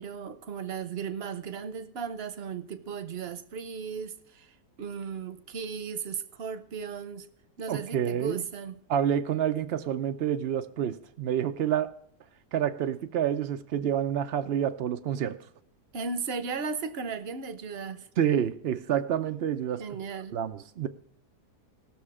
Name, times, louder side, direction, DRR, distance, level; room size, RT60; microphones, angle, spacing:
voice 1, 0.0-4.5 4.8-7.3 7.6-8.8 15.9-18.1 19.8-20.4, right 5 dB, 50° right, 0.8 m, -36 dB
voice 2, 7.7-8.4 8.9-11.9 12.5-15.4 18.2-19.8 20.3-20.9, right 9 dB, 85° right, 0.5 m, -28 dB
18.5 x 6.4 x 4.8 m
omnidirectional pair, 1.8 m